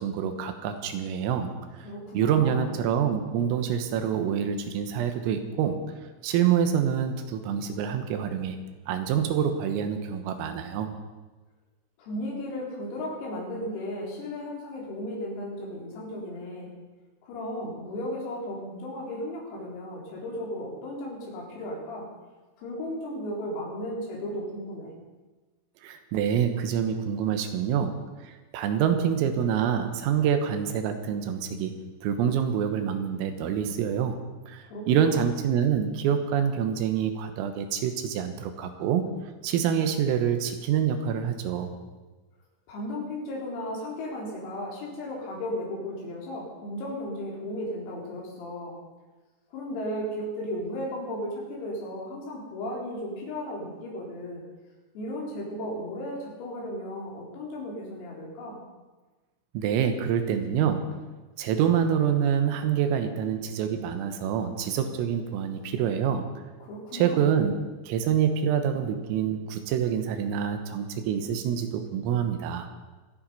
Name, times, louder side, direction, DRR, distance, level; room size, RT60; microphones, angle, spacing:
voice 1, 0.0-1.5 2.2-5.8 6.2-8.6 8.9-10.9 25.8-31.7 32.0-34.2 34.5-39.1 39.4-41.7 59.6-61.1 61.4-66.3 66.9-67.6 67.9-72.7, right 8 dB, 85° right, 7 dB, 3.9 m, -26 dB
voice 2, 1.8-2.7 12.0-16.7 17.2-22.1 22.6-24.9 34.6-35.2 42.7-48.8 49.5-54.4 54.9-58.6 66.6-67.2, left 1 dB, 85° left, -3 dB, 6.8 m, -35 dB
25.0 x 9.1 x 5.6 m, 1.2 s
omnidirectional pair, 6.0 m